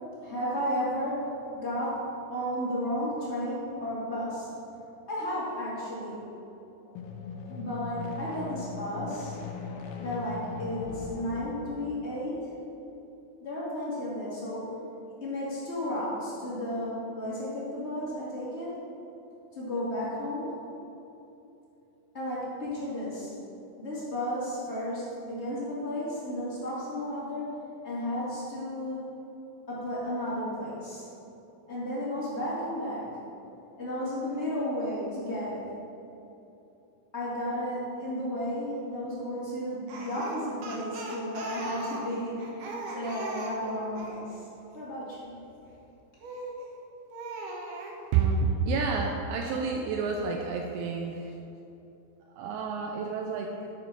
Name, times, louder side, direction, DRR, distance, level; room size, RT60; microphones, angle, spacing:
voice 1, 0.2-4.5 5.1-6.2 7.5-9.3 10.0-12.5 13.4-14.8 15.2-18.8 19.5-20.5 22.1-23.3 23.8-29.2 29.7-31.0 31.7-33.1 33.8-35.6 37.1-44.4 44.7-45.3, equal, 50° left, -9 dB, 0.8 m, -33 dB
sound 1, 6.9-12.5, left 4 dB, 80° left, 3.3 m, -40 dB
Speech, 39.9-44.2 46.2-46.6 47.1-48.0, right 2 dB, 70° right, 2.5 m, -39 dB
voice 2, 48.1-51.3 52.4-53.5, right 5 dB, 85° right, 1 dB, 2.5 m, -29 dB
11.5 x 5.2 x 6.2 m, 2.9 s
omnidirectional pair, 5.7 m